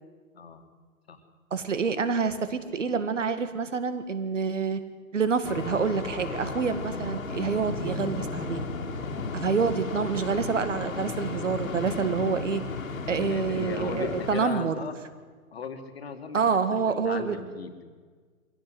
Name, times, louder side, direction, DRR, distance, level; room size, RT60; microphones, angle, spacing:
voice 1, 1.5-4.8 5.1-8.6 9.3-12.6 13.1-14.7 16.3-17.4, right 5 dB, 60° right, 11 dB, 1.9 m, -27 dB
sound 1, 5.4-14.3, left 3 dB, 70° left, 2.5 m, -34 dB
voice 2, 13.1-15.0 15.5-17.8, left 5 dB, 45° left, 7 dB, 2.2 m, -37 dB
23.5 x 16.5 x 7.9 m, 1.5 s
hypercardioid pair, 175°, 42 cm